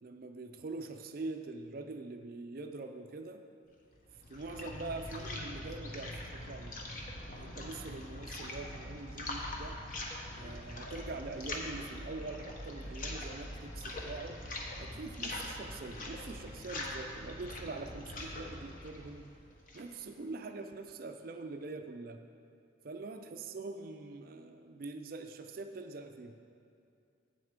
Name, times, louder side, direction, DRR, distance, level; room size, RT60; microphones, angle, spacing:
voice 1, 0.0-3.4 4.3-6.8 7.4-9.8 10.4-14.4 14.8-19.3 19.7-22.2 22.8-26.4, right 3 dB, 50° right, 6 dB, 0.4 m, -44 dB
sound 1, 3.9-20.0, left 1 dB, 45° left, 1.0 m, -43 dB
8.0 x 7.7 x 5.0 m, 2.5 s
head